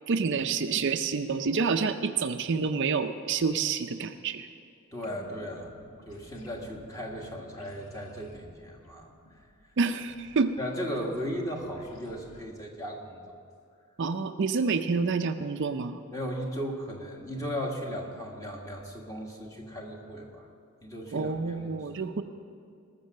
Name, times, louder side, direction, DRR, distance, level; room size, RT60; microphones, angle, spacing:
voice 1, 0.1-4.5 9.8-10.5 14.0-16.0 21.1-22.2, right 4 dB, 55° right, 8 dB, 0.5 m, -28 dB
voice 2, 4.9-5.7 6.1-9.1 10.6-13.4 16.1-20.5 20.8-21.3 21.6-22.0, equal, 15° left, 0 dB, 1.5 m, -36 dB
sound 1, 5.0-12.5, left 1 dB, 65° left, 1.4 m, -53 dB
19.5 x 6.8 x 6.4 m, 2.3 s
head